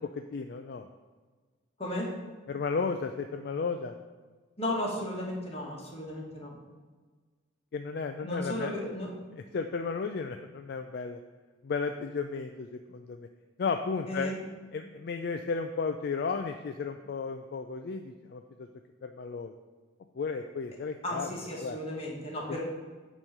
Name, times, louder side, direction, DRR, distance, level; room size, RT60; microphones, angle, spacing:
voice 1, 0.1-0.9 2.5-4.0 7.7-8.8 9.3-11.2 11.6-13.3 13.6-14.3 14.7-18.7 19.0-19.5 20.2-21.8, left 5 dB, 55° left, 6 dB, 0.3 m, -34 dB
voice 2, 1.8-2.2 4.6-6.6 8.2-9.1 14.1-14.4 21.0-22.7, left 1 dB, 30° left, -3 dB, 1.6 m, -34 dB
8.8 x 3.1 x 6.5 m, 1.4 s
head